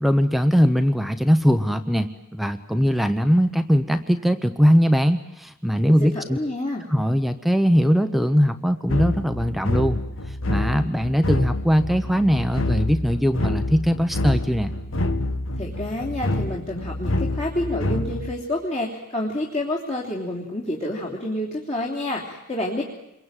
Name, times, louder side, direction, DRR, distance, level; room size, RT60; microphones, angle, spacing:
voice 1, 0.0-6.4 6.9-10.0 10.3-14.7, equal, ahead, 9 dB, 1.0 m, -20 dB
voice 2, 5.9-6.8 15.6-22.8, left 1 dB, 30° left, -4 dB, 3.4 m, -28 dB
sound 1, 8.9-18.3, left 1 dB, 65° left, 1.8 m, -27 dB
27.5 x 23.0 x 9.1 m, 0.84 s
head